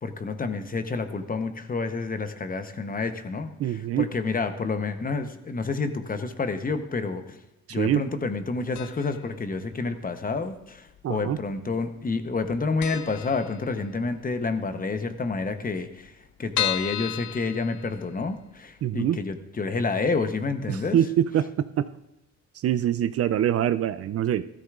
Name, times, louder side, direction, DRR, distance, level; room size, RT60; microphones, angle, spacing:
voice 1, 0.0-7.4 7.7-21.0, left 4 dB, 30° left, 8 dB, 0.9 m, -29 dB
voice 2, 3.6-4.1 7.7-8.0 11.0-11.4 18.8-19.2 20.7-21.9 22.6-24.5, right 10 dB, 50° right, 13 dB, 0.4 m, -24 dB
sound 1, 8.7-9.3 9.5-9.6 10.6-11.3 11.6-11.7 12.0-12.1 12.4-12.5 12.8-14.1 14.5-14.6 14.9-15.0 15.2-15.3 15.8-18.4 18.8-18.9 19.3-19.4, left 13 dB, 70° left, 0.5 m, -33 dB
14.5 x 13.0 x 2.5 m, 0.90 s
cardioid pair, 90°, 30 cm